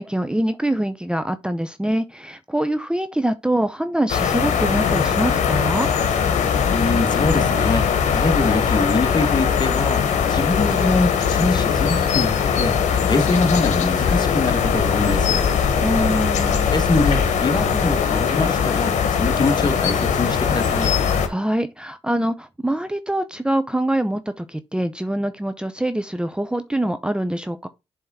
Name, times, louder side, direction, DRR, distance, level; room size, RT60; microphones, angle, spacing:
voice 1, 0.0-5.9 15.8-16.6 21.2-27.7, right 1 dB, 10° right, 0.6 m, -24 dB
sound 1, 4.1-21.3, left 7 dB, 80° left, 1.1 m, -20 dB
voice 2, 6.7-10.0 10.3-12.7 13.1-15.5 16.7-20.9, left 2 dB, 35° left, 1.6 m, -23 dB
7.6 x 3.6 x 4.1 m
supercardioid pair, 50°, 12 cm